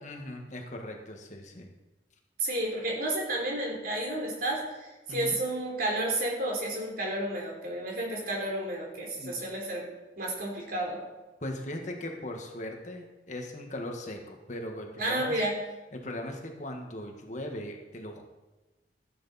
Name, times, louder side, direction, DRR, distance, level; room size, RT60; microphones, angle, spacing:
voice 1, 0.0-1.7 5.1-5.4 9.2-9.4 11.4-15.4 15.9-18.3, left 1 dB, 45° left, 2 dB, 1.6 m, -39 dB
voice 2, 2.4-9.9 10.2-11.0 15.0-15.5, right 1 dB, 55° right, -2 dB, 3.7 m, -31 dB
15.0 x 9.4 x 4.3 m, 1.1 s
head